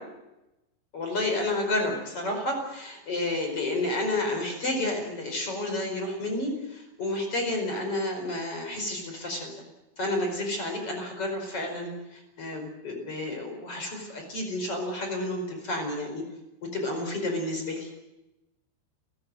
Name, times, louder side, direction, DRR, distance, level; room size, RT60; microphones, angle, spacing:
voice 1, 0.9-9.5 10.0-16.2 16.7-17.9, left 2 dB, 30° left, 4 dB, 5.5 m, -30 dB
29.0 x 16.0 x 7.9 m, 0.95 s
omnidirectional pair, 5.2 m